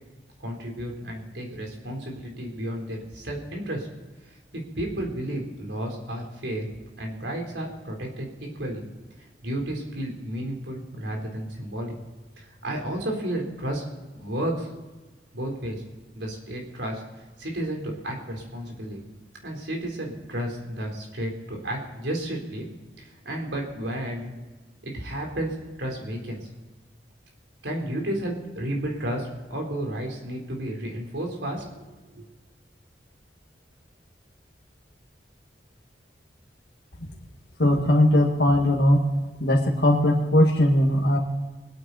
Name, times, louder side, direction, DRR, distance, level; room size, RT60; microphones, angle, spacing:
voice 1, 0.4-3.9 4.5-6.7 7.0-8.8 9.4-11.9 12.4-13.9 14.1-14.7 15.3-15.8 16.2-17.0 17.4-19.0 19.4-22.7 23.0-24.3 24.8-26.5 27.6-31.8 32.1-32.2, right 1 dB, 85° right, 1 dB, 3.9 m, -32 dB
voice 2, 37.6-39.0 39.4-41.2, left 1 dB, 70° left, -1 dB, 1.8 m, -19 dB
23.5 x 8.9 x 4.1 m, 1.2 s
head